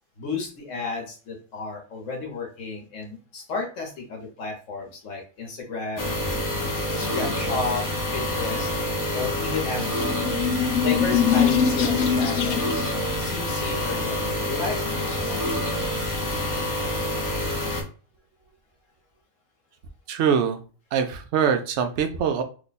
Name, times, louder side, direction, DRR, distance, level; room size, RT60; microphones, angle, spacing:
voice 1, 0.2-6.2 6.9-7.8 8.1-8.7 9.1-10.2 10.8-12.9 13.2-15.6, left 4 dB, 60° left, 1 dB, 1.3 m, -32 dB
sound 1, 6.0-17.8, left 1 dB, 25° left, 0.4 m, -27 dB
sound 2, 10.0-12.9, left 7 dB, 85° left, 1.0 m, -23 dB
voice 2, 20.1-20.6 20.9-22.4, right 7 dB, 65° right, 6 dB, 0.7 m, -23 dB
3.0 x 2.3 x 4.0 m, 0.37 s
omnidirectional pair, 1.5 m